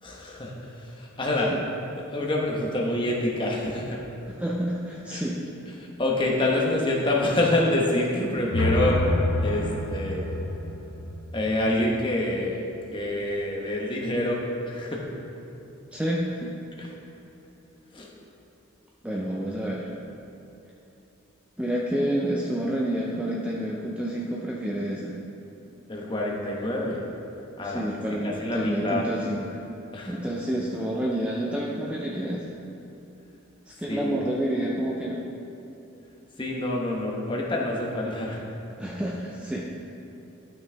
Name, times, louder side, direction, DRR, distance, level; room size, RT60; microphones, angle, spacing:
voice 1, 0.0-1.5 2.0-4.0 5.1-5.2 5.8-9.0 9.4-10.2 11.3-12.6 12.9-15.0 16.8-16.9 17.9-18.1 25.9-27.0 27.6-27.8 28.2-29.0 29.9-30.2 33.9-34.1 36.4-38.5, left 1 dB, 25° left, -2 dB, 1.0 m, -27 dB
voice 2, 4.3-5.4 15.9-16.5 19.0-19.9 21.6-25.1 27.6-29.6 30.1-32.4 33.7-35.2 38.8-39.7, right 1 dB, 5° right, -4 dB, 0.5 m, -29 dB
sound 1, 8.3-12.4, left 1 dB, 55° left, 0.8 m, -28 dB
12.0 x 6.0 x 3.4 m, 2.9 s
head